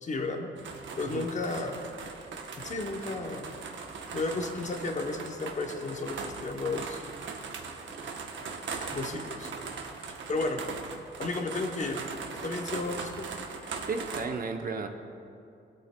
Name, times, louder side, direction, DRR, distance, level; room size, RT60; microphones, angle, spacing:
voice 1, 0.0-0.5 1.0-1.9 2.6-3.6 4.1-7.0 8.9-9.5 10.1-10.6 11.2-12.0 12.4-13.3, left 3 dB, 35° left, 4 dB, 0.8 m, -33 dB
sound 1, 0.6-14.2, right 4 dB, 70° right, 0.9 m, -40 dB
sound 2, 4.6-4.7 5.1-5.2 5.4-5.6 7.0-7.2 7.9-8.1 8.8-8.9 9.4-9.6 10.0-10.1 10.3-10.6 11.8-12.1 12.7-13.1, right 1 dB, 10° left, 1.6 m, -50 dB
voice 2, 13.9-14.9, right 4 dB, 45° right, 5 dB, 0.7 m, -33 dB
19.5 x 8.4 x 2.2 m, 2.5 s
wide cardioid pair, 145°, 20 cm